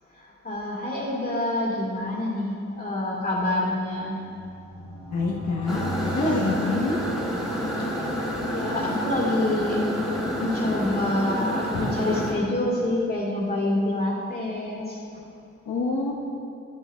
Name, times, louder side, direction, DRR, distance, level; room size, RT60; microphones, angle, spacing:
voice 1, 0.1-4.2 7.8-7.9 8.5-9.8 10.3-15.0, left 1 dB, 30° left, -5 dB, 2.3 m, -27 dB
sound 1, 3.8-7.6, right 1 dB, 15° left, 1.5 m, -38 dB
voice 2, 5.1-5.8 6.1-7.0 15.6-16.1, left 3 dB, 65° left, -4 dB, 1.1 m, -26 dB
sound 2, 5.7-12.3, equal, ahead, 1.8 m, -28 dB
12.5 x 9.6 x 2.3 m, 2.5 s
wide cardioid pair, 125°, 30 cm